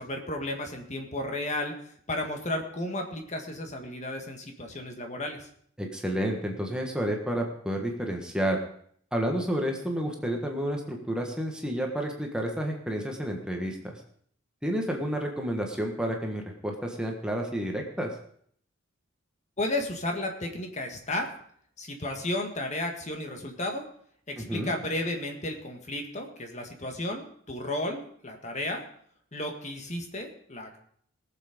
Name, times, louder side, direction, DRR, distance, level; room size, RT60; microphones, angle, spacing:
voice 1, 0.0-1.7 2.1-5.5 19.6-21.3 21.8-23.8 24.3-28.8 29.3-30.8, left 1 dB, 35° left, 4 dB, 1.7 m, -33 dB
voice 2, 5.8-8.6 9.1-14.0 14.6-18.1 24.4-24.7, equal, 5° right, 1 dB, 1.4 m, -30 dB
19.0 x 7.3 x 5.1 m, 0.62 s
head